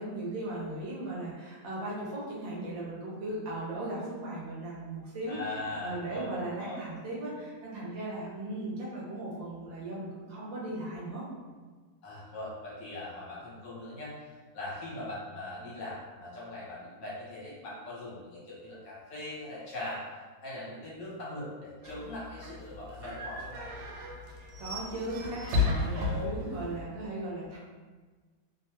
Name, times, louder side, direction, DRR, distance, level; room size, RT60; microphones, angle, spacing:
voice 1, 0.0-5.4 5.8-11.2 24.3-27.6, right 1 dB, 70° right, -5 dB, 1.4 m, -37 dB
voice 2, 5.3-6.3 6.6-6.8 12.0-20.0 20.4-23.9 25.9-26.4, left 2 dB, 65° left, -7 dB, 1.4 m, -41 dB
sound 1, 21.8-26.8, left 3 dB, 90° right, 1.4 m, -34 dB
3.4 x 2.2 x 2.8 m, 1.4 s
omnidirectional pair, 2.2 m